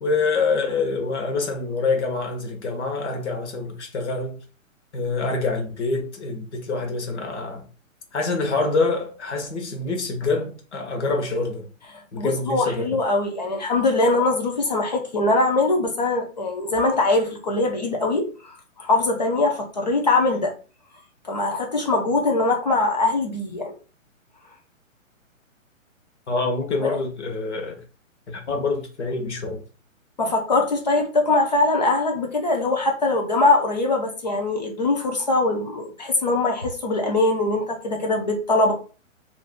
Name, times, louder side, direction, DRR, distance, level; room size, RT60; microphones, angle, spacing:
voice 1, 0.0-4.4 4.9-7.6 8.1-11.7 12.1-12.9 26.3-27.8 28.3-29.6, left 3 dB, 55° left, 1.0 m, -26 dB
voice 2, 11.9-20.5 21.2-23.7 26.8-27.0 30.2-38.7, left 2 dB, 35° left, 0.5 m, -22 dB
2.6 x 2.3 x 3.5 m
hypercardioid pair, 170°, 40 cm